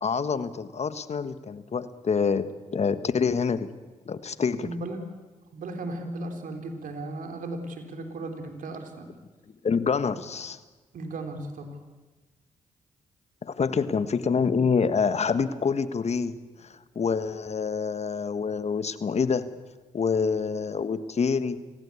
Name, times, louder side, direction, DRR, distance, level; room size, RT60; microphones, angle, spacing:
voice 1, 0.0-2.5 2.7-3.7 4.1-4.7 9.6-10.6 13.4-16.3 16.6-19.4 19.9-21.6, left 5 dB, 50° left, 12 dB, 1.4 m, -26 dB
voice 2, 4.6-5.0 5.5-9.1 10.9-11.8 13.6-13.9, right 2 dB, 75° right, 5 dB, 3.7 m, -36 dB
26.0 x 17.0 x 8.5 m, 1.2 s
supercardioid pair, 55°, 14 cm